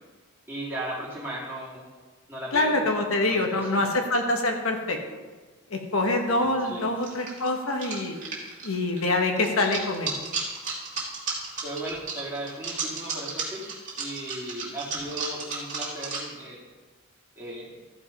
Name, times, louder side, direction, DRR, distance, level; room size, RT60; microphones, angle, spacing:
voice 1, 0.5-1.8 2.3-2.8 3.3-3.8 6.4-6.9 11.6-16.6 17.4-17.8, right 1 dB, 10° right, -7 dB, 2.7 m, -36 dB
voice 2, 2.5-5.0 5.7-8.2 8.6-10.1, left 2 dB, 70° left, 3 dB, 1.5 m, -25 dB
sound 1, 5.9-6.0 7.0-16.2, right 4 dB, 35° right, 2.7 m, -33 dB
14.0 x 5.4 x 5.4 m, 1.3 s
head